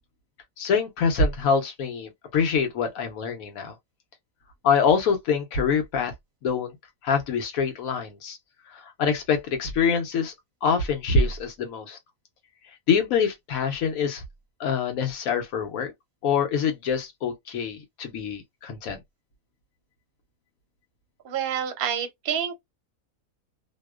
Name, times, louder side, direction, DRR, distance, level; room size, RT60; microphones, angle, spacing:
voice 1, 0.6-3.7 4.6-6.1 6.4-6.8 7.0-8.4 8.7-10.3 10.6-12.0 12.9-14.2 14.6-15.9 16.2-19.0, left 5 dB, 70° left, 1.1 m, -25 dB
voice 2, 21.2-22.6, right 9 dB, 55° right, 0.7 m, -28 dB
2.8 x 2.0 x 2.2 m
omnidirectional pair, 1.6 m